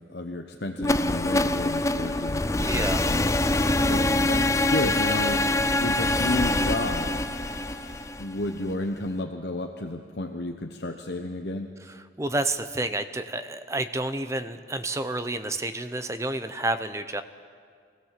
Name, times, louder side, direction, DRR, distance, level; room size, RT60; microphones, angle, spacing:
voice 1, 0.1-2.4 3.0-3.4 3.8-5.5 5.8-7.2 8.2-11.7, left 2 dB, 60° left, 4 dB, 1.0 m, -32 dB
sound 1, 0.8-8.7, left 2 dB, 15° left, 0.5 m, -24 dB
voice 2, 2.6-3.3 11.8-17.2, right 2 dB, 15° right, 9 dB, 0.7 m, -30 dB
sound 2, 2.9-8.0, left 2 dB, 45° left, 5.5 m, -48 dB
24.0 x 16.5 x 7.5 m, 2.1 s
head